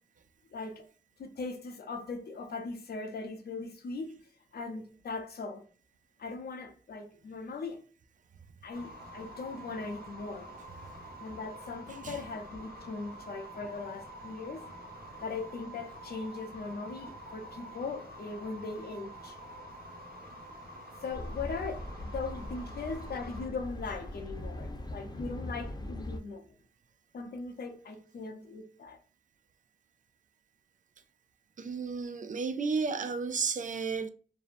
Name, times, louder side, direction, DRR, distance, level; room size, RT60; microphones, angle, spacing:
voice 1, 0.5-0.8 1.2-4.2 4.5-5.6 6.2-7.8 8.6-10.6 11.2-14.7 15.2-19.4 21.0-26.4 27.1-29.0, left 4 dB, 80° left, 0.6 m, -39 dB
sound 1, 8.7-23.5, right 1 dB, 75° right, 1.2 m, -47 dB
voice 2, 11.9-12.2 31.6-34.1, right 5 dB, 55° right, 0.4 m, -33 dB
sound 2, 21.1-26.2, left 1 dB, 25° left, 0.7 m, -40 dB
2.6 x 2.0 x 2.5 m
cardioid pair, 55°, 16 cm